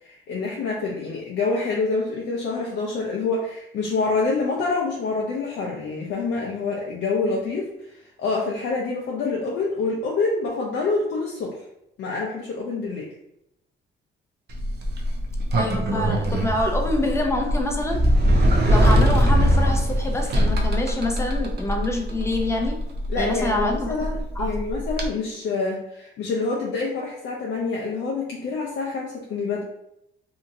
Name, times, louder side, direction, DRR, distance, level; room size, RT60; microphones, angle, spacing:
voice 1, 0.0-11.6 12.0-13.1 23.1-29.6, left 3 dB, 70° left, -2 dB, 0.5 m, -27 dB
Sliding door, 14.5-25.1, equal, 55° right, 0.6 m, -22 dB
voice 2, 15.5-18.1 18.6-22.8 23.2-23.9 24.4-24.5, left 1 dB, 15° left, 2 dB, 0.5 m, -26 dB
2.8 x 2.5 x 2.6 m, 0.82 s
cardioid pair, 90°, 20 cm